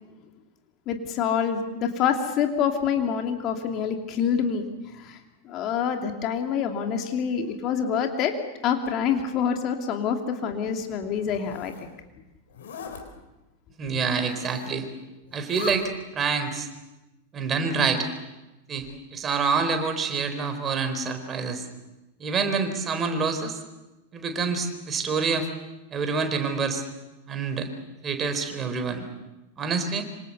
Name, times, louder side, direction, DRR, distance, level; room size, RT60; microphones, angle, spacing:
voice 1, 0.9-4.6 4.9-5.2 5.4-8.3 8.6-11.7, left 7 dB, 40° left, 4 dB, 2.7 m, -26 dB
Zipper (clothing), 11.1-11.9 12.5-13.0 14.1-14.8 15.2-15.8, left 7 dB, 65° left, 4.3 m, -41 dB
voice 2, 13.8-14.9 15.3-16.7 17.3-18.1 18.7-21.7 22.2-23.6 24.1-25.5 25.9-26.8 27.3-27.7 28.0-29.1 29.6-30.0, right 5 dB, 25° right, 7 dB, 4.2 m, -27 dB
26.5 x 26.0 x 6.9 m, 1.0 s
figure-of-eight pair, 90°, 0 cm